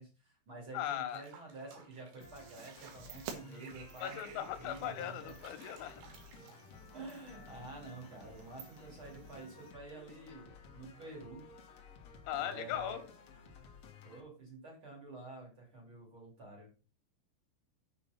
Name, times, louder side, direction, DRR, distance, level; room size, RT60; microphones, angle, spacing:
voice 1, 0.0-5.3 6.9-11.8 12.4-13.0 14.0-16.7, right 2 dB, 30° right, -2 dB, 3.8 m, -49 dB
voice 2, 0.7-1.2 4.0-6.3 12.3-13.0, left 11 dB, 90° left, 9 dB, 3.7 m, -39 dB
Water / Bathtub (filling or washing), 1.1-7.0, right 6 dB, 70° right, 3.9 m, -60 dB
sound 1, 2.2-14.2, left 5 dB, 65° left, 1.5 m, -55 dB
sound 2, 2.2-9.7, right 8 dB, 90° right, 3.9 m, -53 dB
7.5 x 7.1 x 5.2 m, 0.34 s
omnidirectional pair, 5.4 m